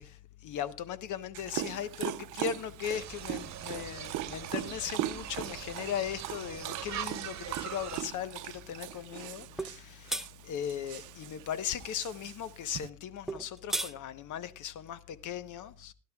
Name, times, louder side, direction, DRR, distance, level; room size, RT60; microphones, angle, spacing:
voice 1, 0.0-15.9, left 9 dB, 80° left, 1.0 m, -38 dB
Dog, 1.3-12.9, right 15 dB, 80° right, 0.6 m, -40 dB
sound 1, 2.8-8.0, right 10 dB, 65° right, 1.1 m, -42 dB
sound 2, 9.6-9.8 10.1-10.3 13.3-13.9, right 1 dB, ahead, 0.6 m, -33 dB
20.5 x 11.5 x 2.3 m
cardioid pair, 90°, 30 cm